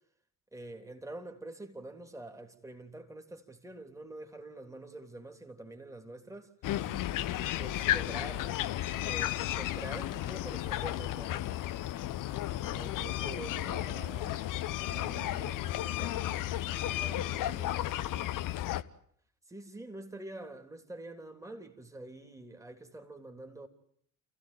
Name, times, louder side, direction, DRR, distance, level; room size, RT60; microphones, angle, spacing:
voice 1, 0.5-6.5 7.4-8.6 9.0-11.5 19.5-23.7, right 1 dB, 5° right, 3.4 m, -46 dB
sound 1, 6.6-18.8, left 13 dB, 45° left, 1.0 m, -33 dB
voice 2, 12.7-14.4 14.9-16.4 17.0-18.3, right 5 dB, 75° right, 1.9 m, -48 dB
30.0 x 16.0 x 9.1 m
figure-of-eight pair, 55°, 46 cm